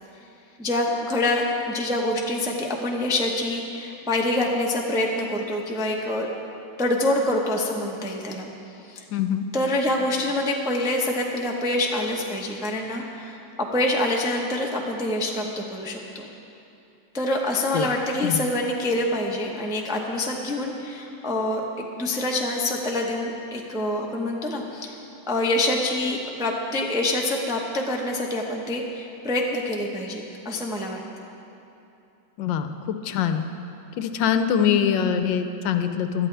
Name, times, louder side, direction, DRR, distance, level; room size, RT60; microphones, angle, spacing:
voice 1, 0.6-6.3 6.8-8.5 8.9-9.0 9.5-16.2 17.1-24.9 25.3-31.0, left 1 dB, 5° right, -1 dB, 0.5 m, -26 dB
voice 2, 9.1-9.5 17.7-17.9 18.2-18.4 32.4-33.4 34.0-36.3, left 8 dB, 80° left, 8 dB, 1.3 m, -23 dB
17.5 x 12.0 x 3.4 m, 2.8 s
omnidirectional pair, 2.1 m